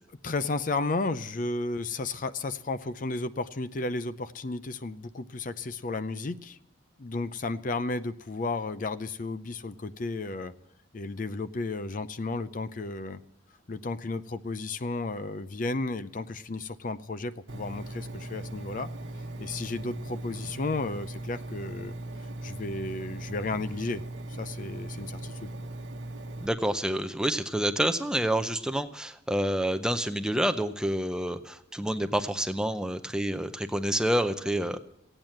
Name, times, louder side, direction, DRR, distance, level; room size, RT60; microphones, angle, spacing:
voice 1, 0.2-6.6 7.0-10.5 10.9-13.2 13.7-18.9 19.4-21.9 22.4-24.0 24.4-25.5, left 3 dB, 40° left, 13 dB, 0.5 m, -33 dB
Engine, 17.5-26.5, right 1 dB, 70° right, 1.1 m, -39 dB
voice 2, 26.4-34.8, right 1 dB, 5° right, 9 dB, 0.6 m, -28 dB
15.5 x 8.9 x 7.6 m, 0.82 s
head